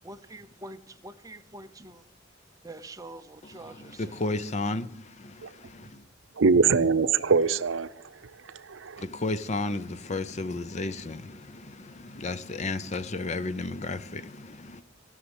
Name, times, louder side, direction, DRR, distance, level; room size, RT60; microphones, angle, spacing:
voice 1, 0.0-2.0 2.6-4.2, right 2 dB, 20° right, 0.7 m, -45 dB
voice 2, 3.6-6.0 9.0-14.8, left 2 dB, 35° left, 0.6 m, -33 dB
voice 3, 6.4-7.9 8.2-9.0, right 5 dB, 80° right, 0.7 m, -23 dB
17.5 x 6.4 x 8.1 m
head